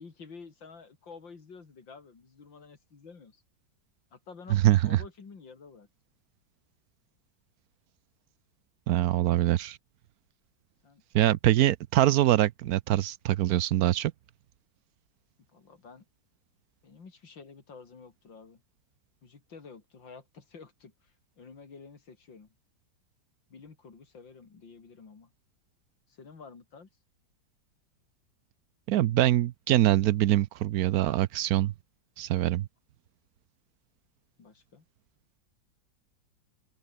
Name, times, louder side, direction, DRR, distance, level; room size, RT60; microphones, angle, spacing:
voice 1, 0.0-3.4 4.1-4.6 4.9-5.9 10.8-11.0 15.5-16.0 16.8-18.6 19.2-22.5 23.5-25.3 26.1-26.9 34.4-34.9, left 5 dB, 85° left, 3.8 m, -50 dB
voice 2, 4.5-5.0 8.9-9.8 11.1-14.1 28.9-31.7 32.2-32.7, right 13 dB, 70° right, 0.9 m, -24 dB
omnidirectional pair, 2.0 m